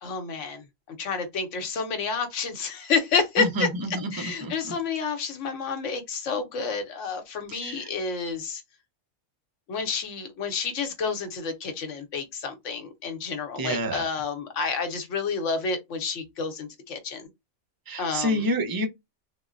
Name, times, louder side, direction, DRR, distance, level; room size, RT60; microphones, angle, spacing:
voice 1, 0.0-3.7 4.1-8.6 9.7-17.3 18.0-18.5, left 5 dB, 75° left, 1.0 m, -29 dB
voice 2, 3.9-4.7 7.5-7.9 13.6-14.0 17.9-18.9, equal, 30° right, 0.4 m, -28 dB
3.6 x 2.1 x 2.4 m
omnidirectional pair, 1.3 m